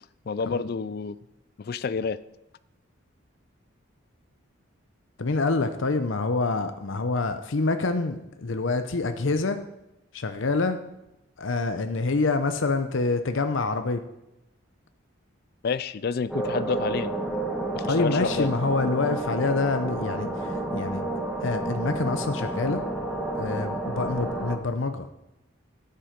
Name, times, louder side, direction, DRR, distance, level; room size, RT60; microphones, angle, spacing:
voice 1, 0.3-1.2 1.6-2.2 15.6-17.1 17.7-18.5, left 5 dB, 50° left, 16 dB, 0.3 m, -29 dB
voice 2, 5.2-9.6 10.1-10.8 11.4-14.0 17.8-21.0 21.4-22.8 23.3-25.1, left 3 dB, 70° left, 8 dB, 0.7 m, -26 dB
sound 1, 16.3-24.6, right 2 dB, ahead, 1.3 m, -30 dB
13.0 x 7.7 x 5.2 m, 0.90 s
head